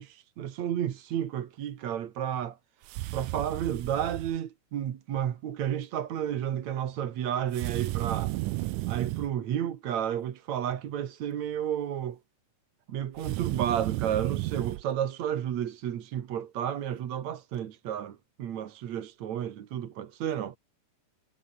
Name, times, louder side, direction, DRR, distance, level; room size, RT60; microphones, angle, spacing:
voice 1, 0.0-2.6 3.1-8.4 8.9-12.2 12.9-20.6, right 10 dB, 60° right, 2.6 m, -32 dB
sound 1, 2.8-4.4 7.5-9.3 13.2-14.8, right 19 dB, 80° right, 1.9 m, -33 dB
omnidirectional pair, 4.0 m